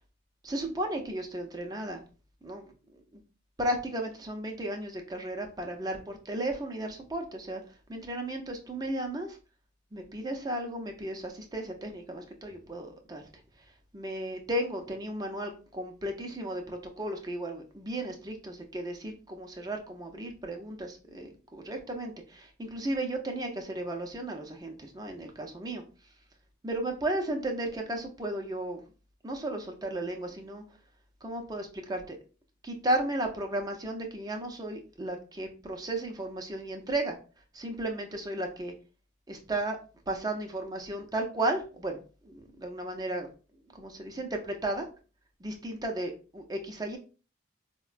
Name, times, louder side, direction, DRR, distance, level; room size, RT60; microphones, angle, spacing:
voice 1, 0.4-2.0 2.4-2.6 3.1-3.2 3.6-9.4 9.9-13.2 13.9-25.8 26.6-28.8 29.2-30.6 31.2-32.2 32.6-37.2 37.5-38.7 39.3-39.8 40.1-43.3 43.7-44.9 45.4-47.0, right 1 dB, 20° right, 3 dB, 0.5 m, -34 dB
4.6 x 2.2 x 2.4 m, 0.35 s
head